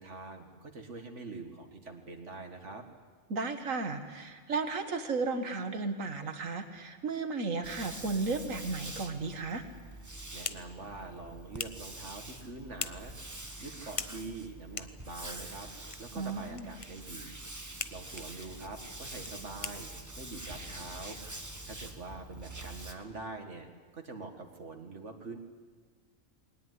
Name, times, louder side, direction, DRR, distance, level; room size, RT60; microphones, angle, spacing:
voice 1, 0.0-2.8 10.3-15.7 16.0-21.2 21.7-23.7 23.9-25.4, right 3 dB, 65° right, 4 dB, 2.2 m, -45 dB
voice 2, 3.3-9.6 16.2-16.7, right 3 dB, 80° right, 7 dB, 2.1 m, -34 dB
sound 1, 7.6-22.9, right 1 dB, 15° right, 1.4 m, -45 dB
sound 2, 9.9-22.3, left 4 dB, 30° left, 0.8 m, -46 dB
21.0 x 19.5 x 9.6 m, 1.4 s
omnidirectional pair, 1.4 m